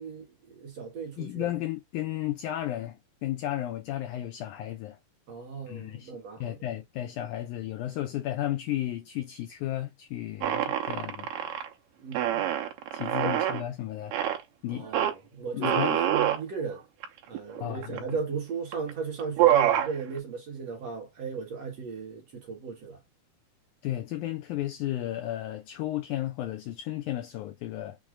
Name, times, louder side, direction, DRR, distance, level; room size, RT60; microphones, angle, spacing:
voice 1, 0.0-1.5 5.3-6.6 12.0-12.5 13.2-13.3 14.7-16.8 17.3-23.0, right 5 dB, 60° right, 1.9 m, -36 dB
voice 2, 1.2-5.0 5.7-6.1 6.4-11.3 12.9-14.1 14.6-14.9 15.5-16.0 17.6-18.0 23.8-28.0, left 13 dB, 85° left, 1.7 m, -33 dB
sound 1, 10.4-11.7 12.1-13.6 14.1-14.4 14.9-15.1 15.6-16.4 17.0-17.1 17.4-18.1 18.7-18.9 19.2-19.9, right 11 dB, 75° right, 2.2 m, -25 dB
6.3 x 2.1 x 3.5 m
omnidirectional pair, 4.1 m